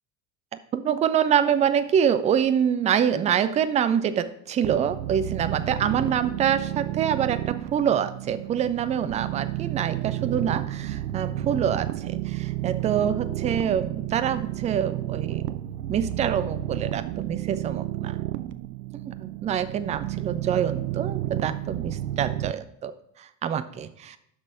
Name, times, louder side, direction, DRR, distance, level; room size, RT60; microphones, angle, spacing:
voice 1, 0.7-15.5 15.9-18.2 18.9-24.2, right 8 dB, 15° right, 12 dB, 0.3 m, -26 dB
sound 1, 4.6-22.5, right 14 dB, 70° right, 0.6 m, -31 dB
10.0 x 6.1 x 3.3 m, 0.74 s
figure-of-eight pair, 60°, 49 cm